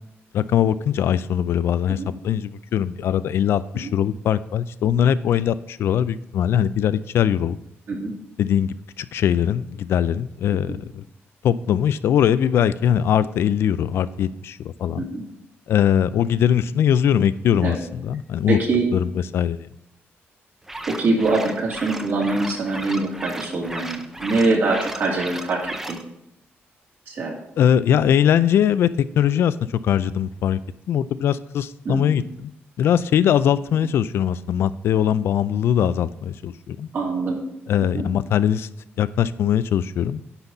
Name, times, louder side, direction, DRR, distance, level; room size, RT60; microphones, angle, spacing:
voice 1, 0.3-7.6 8.4-11.0 11.4-15.0 15.7-18.6 18.9-19.7 27.6-29.5 29.8-30.6 30.9-32.5 32.8-36.9 37.7-38.7 39.0-40.2, left 9 dB, 65° left, 15 dB, 0.4 m, -21 dB
voice 2, 18.5-18.8 20.9-25.6 25.9-26.0 27.1-27.4 31.8-32.2 36.9-37.4 37.9-38.0, right 3 dB, 50° right, -2 dB, 2.5 m, -23 dB
sound 1, 20.6-26.0, right 1 dB, 10° right, 0.5 m, -35 dB
9.8 x 4.0 x 7.1 m, 0.80 s
wide cardioid pair, 165°, 4 cm